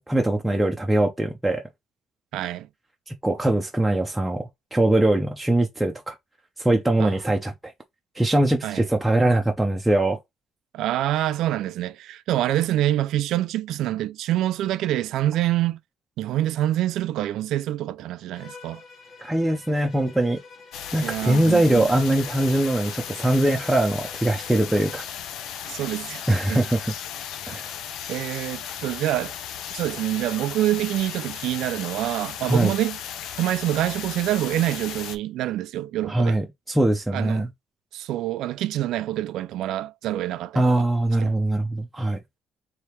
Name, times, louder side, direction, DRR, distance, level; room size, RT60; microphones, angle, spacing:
voice 1, 0.0-1.6 3.1-6.1 6.6-7.5 8.2-10.2 19.2-20.4 20.9-25.0 26.3-26.9 27.5-27.8 32.4-32.7 36.1-37.5 40.5-42.2, right 1 dB, 5° right, 0.5 m, -22 dB
voice 2, 2.3-2.7 7.0-7.2 8.6-8.8 10.7-15.8 16.2-18.8 21.0-21.9 25.7-26.6 28.1-29.3 29.7-33.0 33.4-36.4 37.1-37.5 37.9-40.9 41.2-41.3, right 13 dB, 85° right, 0.3 m, -26 dB
Bowed string instrument, 18.3-25.1, left 4 dB, 40° left, 1.5 m, -47 dB
sound 1, 20.7-35.2, left 9 dB, 90° left, 0.6 m, -36 dB
3.4 x 2.8 x 4.4 m
cardioid pair, 160°, 0 cm